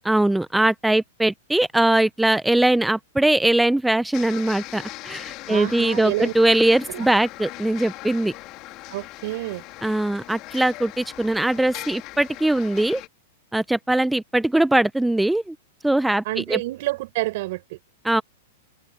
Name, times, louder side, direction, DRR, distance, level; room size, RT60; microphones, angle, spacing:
voice 1, 0.1-8.3 9.8-13.0 13.5-15.5 15.8-16.2 16.5-16.6 18.0-18.2, right 1 dB, 5° right, 0.5 m, -21 dB
sound 1, 4.1-13.1, left 19 dB, 40° left, 3.0 m, -39 dB
voice 2, 5.5-6.3 6.9-7.1 8.9-9.6 16.2-17.8, right 19 dB, 60° right, 6.6 m, -28 dB
hypercardioid pair, 135°, 0 cm